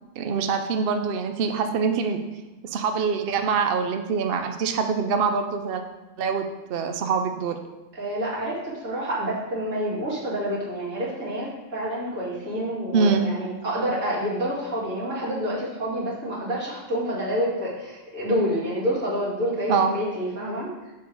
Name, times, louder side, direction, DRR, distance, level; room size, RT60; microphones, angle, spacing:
voice 1, 0.2-2.2 2.6-5.8 6.2-6.4 6.7-7.6 12.9-13.3 19.7-19.9, right 5 dB, 60° right, 6 dB, 0.7 m, -24 dB
voice 2, 7.9-20.9, equal, 80° right, -8 dB, 2.7 m, -28 dB
6.4 x 4.6 x 5.2 m, 1.1 s
omnidirectional pair, 1.3 m